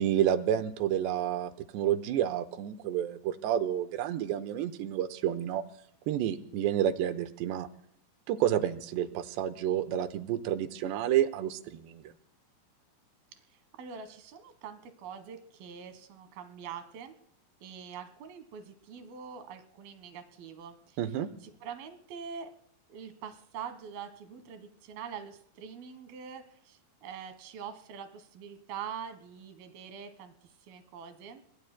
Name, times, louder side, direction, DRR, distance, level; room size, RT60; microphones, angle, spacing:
voice 1, 0.0-5.6 6.1-7.7 8.3-12.0 21.0-21.3, right 11 dB, 85° right, 11 dB, 3.0 m, -29 dB
voice 2, 13.5-17.2 17.6-21.0 21.4-22.5 22.9-31.4, right 7 dB, 65° right, 9 dB, 3.1 m, -44 dB
26.0 x 20.5 x 2.2 m, 0.67 s
omnidirectional pair, 4.9 m